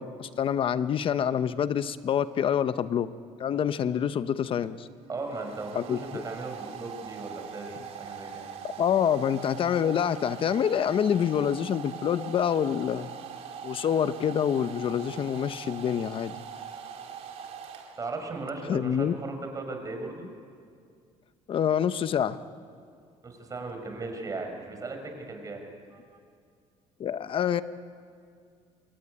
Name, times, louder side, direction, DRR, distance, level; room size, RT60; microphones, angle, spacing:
voice 1, 0.0-3.1 3.4-4.9 5.7-6.2 8.8-13.1 13.6-16.3 18.7-19.1 21.5-22.4 27.0-27.6, left 8 dB, 50° left, 13 dB, 1.0 m, -26 dB
Domestic sounds home sounds, 4.6-18.4, right 7 dB, 65° right, 3.7 m, -42 dB
voice 2, 5.1-8.5 18.0-20.3 23.2-26.0, right 3 dB, 30° right, 4 dB, 5.8 m, -37 dB
25.5 x 21.5 x 9.9 m, 2.2 s
cardioid pair, 115°, 12 cm